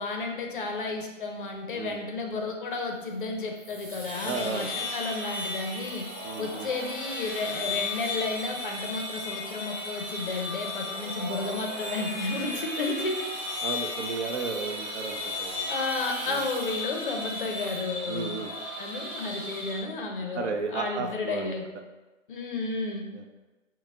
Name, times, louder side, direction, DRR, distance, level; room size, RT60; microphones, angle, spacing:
voice 1, 0.0-6.1 6.4-13.2 15.7-18.4 18.8-21.7 22.3-23.1, left 3 dB, 45° left, 3 dB, 0.5 m, -32 dB
sound 1, 3.6-19.8, left 2 dB, 10° right, 0.8 m, -35 dB
voice 2, 4.2-4.7 6.2-6.7 13.6-15.7 16.3-16.5 18.1-18.5 20.3-21.5 23.1-23.2, right 4 dB, 60° right, 4 dB, 0.6 m, -34 dB
4.3 x 2.1 x 3.5 m, 1.2 s
hypercardioid pair, 145°, 39 cm